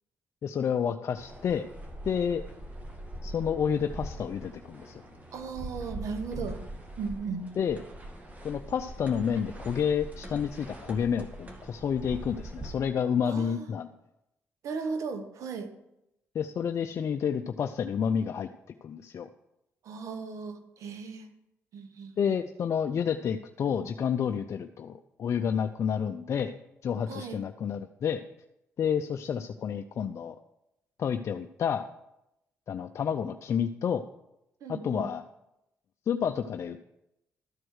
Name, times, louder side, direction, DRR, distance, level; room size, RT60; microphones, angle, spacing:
voice 1, 0.4-1.6 2.0-2.4 3.2-5.0 7.6-7.8 8.4-13.9 16.3-18.5 18.8-19.3 22.2-26.6 26.8-28.2 28.8-30.4 31.0-31.9 32.7-34.0 34.7-35.2 36.1-36.9, left 7 dB, 60° left, 7 dB, 0.4 m, -29 dB
sound 1, 1.2-12.8, right 1 dB, 25° right, 1.8 m, -42 dB
voice 2, 5.3-6.6 7.0-7.4 13.2-13.7 14.6-15.7 19.8-21.3 21.7-22.1 27.1-27.4 34.6-35.1, right 5 dB, 75° right, 8 dB, 1.0 m, -36 dB
12.5 x 4.7 x 6.3 m, 0.87 s
cardioid pair, 70°, 6 cm